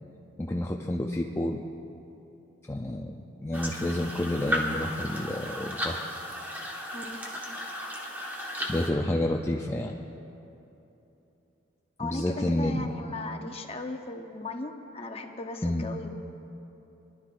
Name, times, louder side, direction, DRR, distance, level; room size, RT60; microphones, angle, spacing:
voice 1, 0.4-1.6 2.7-6.1 8.7-10.0 12.0-12.8 15.6-15.9, left 1 dB, 15° left, 0 dB, 0.4 m, -29 dB
sound 1, 3.5-8.9, equal, 10° right, 1.4 m, -34 dB
voice 2, 12.0-16.1, left 2 dB, 30° left, 4 dB, 0.9 m, -37 dB
24.5 x 11.5 x 2.5 m, 3.0 s
head